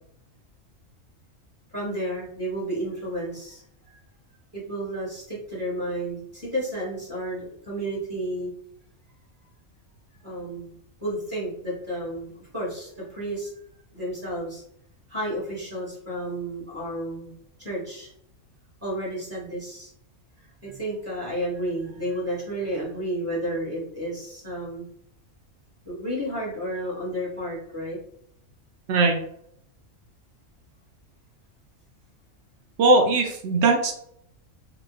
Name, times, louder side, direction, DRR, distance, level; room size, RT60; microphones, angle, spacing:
voice 1, 1.7-4.0 4.5-8.5 10.2-10.7 11.0-13.5 13.9-14.6 15.1-17.3 17.6-18.1 18.8-19.9 20.4-24.8 25.8-28.0, right 1 dB, 10° right, -6 dB, 1.3 m, -32 dB
voice 2, 32.8-33.9, right 3 dB, 65° right, 3 dB, 0.8 m, -19 dB
3.0 x 2.2 x 2.4 m, 0.69 s
omnidirectional pair, 1.4 m